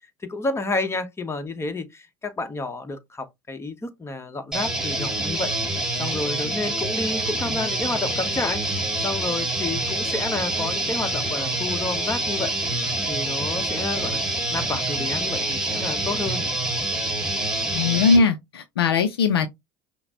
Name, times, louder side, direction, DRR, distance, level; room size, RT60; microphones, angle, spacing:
voice 1, 0.3-5.5 6.0-12.5 13.1-14.2 14.5-16.4, left 2 dB, 20° left, 1.2 m, -30 dB
sound 1, 4.5-18.2, right 2 dB, 5° right, 1.8 m, -26 dB
voice 2, 17.7-19.5, left 4 dB, 85° left, 0.5 m, -20 dB
5.6 x 2.2 x 3.9 m
hypercardioid pair, 75°, 13 cm